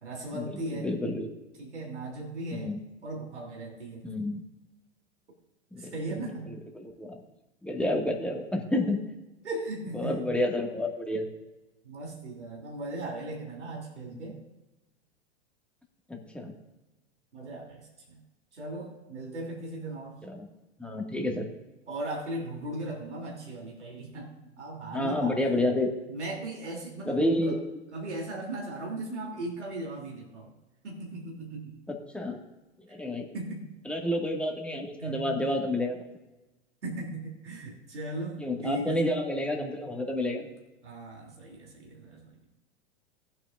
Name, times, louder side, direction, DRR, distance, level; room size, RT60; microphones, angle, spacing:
voice 1, 0.0-0.9 1.6-2.7 3.0-4.0 5.8-6.5 9.4-10.2 11.8-14.4 17.3-18.2 18.5-20.2 21.9-25.6 26.1-27.6 27.9-30.5 30.8-31.8 32.9-33.0 33.3-33.7 35.0-35.4 36.8-39.0 40.8-42.3, right 2 dB, 90° right, -1 dB, 3.1 m, -37 dB
voice 2, 0.8-1.3 2.5-2.8 4.0-4.4 5.7-5.9 6.7-7.2 7.6-9.0 9.9-11.3 16.1-16.5 20.2-20.5 20.8-21.5 24.9-25.9 27.1-27.6 31.9-32.4 32.8-33.3 33.9-36.0 38.4-40.5, left 1 dB, 5° left, 1 dB, 1.9 m, -29 dB
19.0 x 9.0 x 2.5 m, 1.1 s
hypercardioid pair, 105°, 34 cm